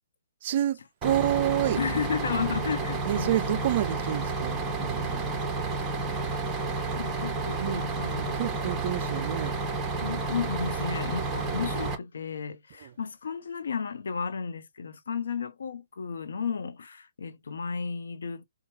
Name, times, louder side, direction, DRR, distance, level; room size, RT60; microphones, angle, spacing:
voice 1, 0.4-1.8 3.0-5.3 7.6-7.9 8.4-9.6 11.5-11.6 12.8-12.9, right 12 dB, 45° right, 0.3 m, -29 dB
Bus, 1.0-12.0, right 3 dB, 10° right, 1.1 m, -31 dB
voice 2, 1.8-3.6 6.9-8.4 10.0-18.4, left 6 dB, 70° left, 0.8 m, -33 dB
4.4 x 2.3 x 3.1 m
hypercardioid pair, 135°, 0 cm